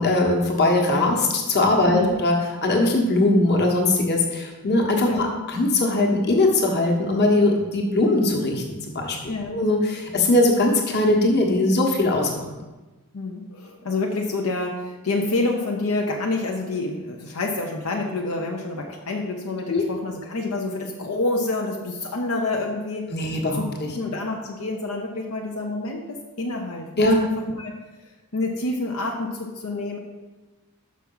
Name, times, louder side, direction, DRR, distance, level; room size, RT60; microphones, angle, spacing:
voice 1, 0.0-2.3 2.6-9.2 9.5-12.4 19.7-19.8 23.1-23.6 27.0-27.2, left 2 dB, 50° left, 1 dB, 1.3 m, -20 dB
voice 2, 9.3-9.6 13.1-23.6 23.9-27.0 27.4-27.7 28.3-30.0, left 2 dB, 80° left, 0 dB, 0.8 m, -28 dB
6.3 x 5.8 x 5.5 m, 1.2 s
head